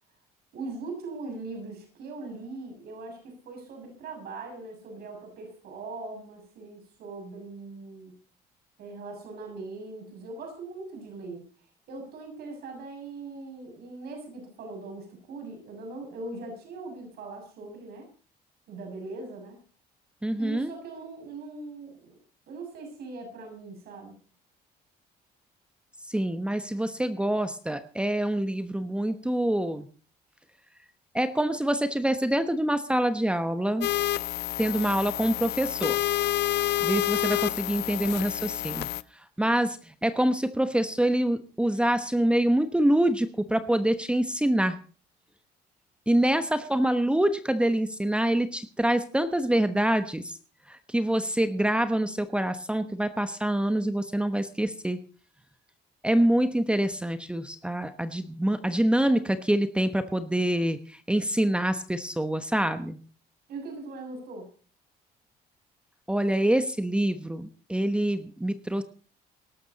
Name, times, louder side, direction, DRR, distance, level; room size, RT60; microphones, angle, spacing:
voice 1, 0.5-8.2 8.8-11.4 11.9-18.1 18.7-19.6 20.4-22.2 22.5-24.1 63.5-64.5, right 3 dB, 70° right, 3 dB, 6.9 m, -40 dB
voice 2, 20.2-20.7 26.1-29.9 31.1-33.9 34.6-36.0 36.8-38.9 39.4-44.8 46.1-50.3 50.7-55.0 56.0-63.0 66.1-68.8, right 1 dB, 5° right, 10 dB, 1.1 m, -26 dB
sound 1, 33.8-39.0, left 14 dB, 85° left, 0.6 m, -28 dB
19.0 x 12.0 x 4.1 m, 0.39 s
cardioid pair, 110°, 17 cm